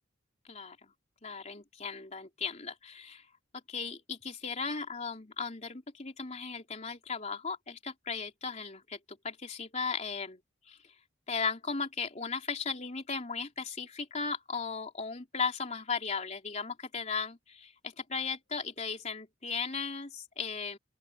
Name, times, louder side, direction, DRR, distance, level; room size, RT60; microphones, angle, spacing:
voice 1, 0.5-0.9 1.2-3.2 3.7-10.4 10.7-10.8 11.3-20.8, left 5 dB, 35° left, 3.3 m, -36 dB
open air
head